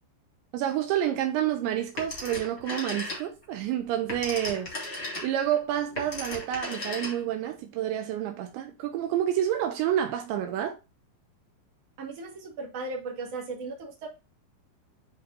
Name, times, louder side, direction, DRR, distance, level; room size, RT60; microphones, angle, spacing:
voice 1, 0.5-10.8, right 11 dB, 80° right, 3.0 m, -29 dB
Telephone, 2.0-3.5 3.9-7.5, left 2 dB, 40° left, 1.1 m, -36 dB
voice 2, 12.0-14.1, right 3 dB, 40° right, 2.7 m, -36 dB
9.5 x 4.3 x 2.7 m
omnidirectional pair, 5.3 m